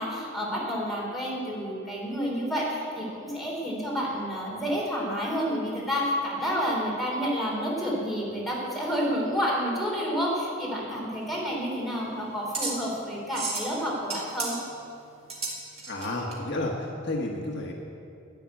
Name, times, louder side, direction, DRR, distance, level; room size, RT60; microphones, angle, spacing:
voice 1, 0.0-14.5, equal, ahead, -5 dB, 3.6 m, -29 dB
sound 1, 11.2-16.4, right 3 dB, 30° right, 2.4 m, -36 dB
voice 2, 15.9-17.7, left 2 dB, 55° left, 0 dB, 1.3 m, -31 dB
11.0 x 9.9 x 8.4 m, 2.6 s
head